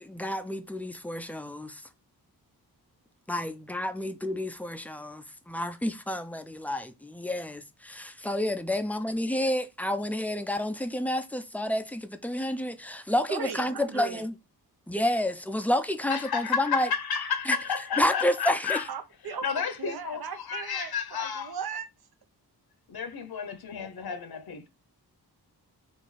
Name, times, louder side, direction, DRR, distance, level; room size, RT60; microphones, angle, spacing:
voice 1, 0.0-1.9 3.3-7.6 8.3-14.3 14.9-16.9 17.5-17.6 18.0-18.9, left 1 dB, 5° left, 0.4 m, -29 dB
voice 2, 13.3-14.2 18.9-19.4 19.8-21.9, right 7 dB, 65° right, 0.8 m, -37 dB
voice 3, 16.1-18.8 19.2-21.6 22.9-24.7, left 7 dB, 70° left, 0.9 m, -32 dB
4.9 x 2.5 x 4.1 m
wide cardioid pair, 145°, 39 cm